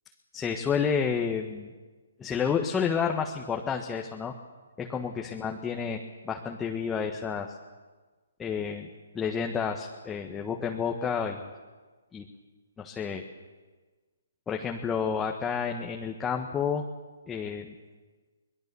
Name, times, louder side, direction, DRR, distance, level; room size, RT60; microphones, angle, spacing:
voice 1, 0.3-1.7 2.2-4.3 4.8-7.5 8.4-8.9 9.1-11.4 12.1-12.2 12.8-13.2 14.5-16.8 17.3-17.7, left 6 dB, 10° left, 1 dB, 1.5 m, -30 dB
24.0 x 20.5 x 7.0 m, 1.3 s
hypercardioid pair, 145°, 0 cm